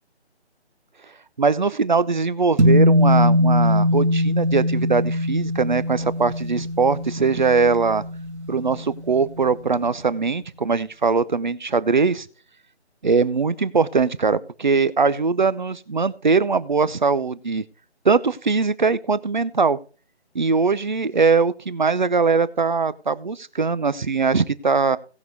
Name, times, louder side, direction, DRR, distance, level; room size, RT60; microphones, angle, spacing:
voice 1, 1.4-8.0 8.5-12.3 13.0-17.6 18.0-19.8 20.3-25.0, right 4 dB, 45° right, 17 dB, 0.7 m, -21 dB
sound 1, 2.6-9.2, left 1 dB, 90° right, 2.3 m, -21 dB
18.0 x 6.3 x 3.4 m, 0.36 s
figure-of-eight pair, 170°, 33 cm